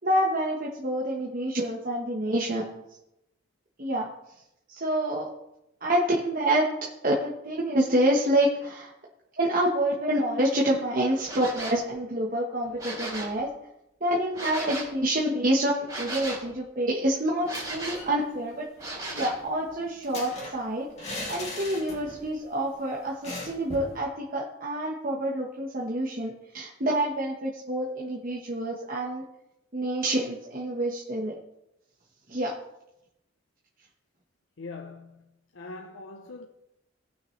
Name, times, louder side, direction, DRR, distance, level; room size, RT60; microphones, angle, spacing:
voice 1, 0.0-2.8 3.8-4.1 4.7-5.3 5.8-6.7 7.0-8.9 9.4-13.5 14.0-18.6 19.1-20.9 21.3-29.2 29.7-31.3 32.3-32.5, right 1 dB, 45° right, 1.3 m, -27 dB
sound 1, 11.2-11.8 12.7-13.4 14.3-14.9 15.9-16.5 17.4-18.1 18.8-19.4, right 1 dB, 15° right, 3.5 m, -36 dB
sound 2, 17.4-18.2 18.5-18.6 18.9-22.3 22.6-22.7 23.2-24.0, left 1 dB, 35° left, 2.7 m, -39 dB
voice 2, 34.6-35.3 35.5-36.5, left 3 dB, 75° left, 0.7 m, -42 dB
18.0 x 6.3 x 3.3 m
head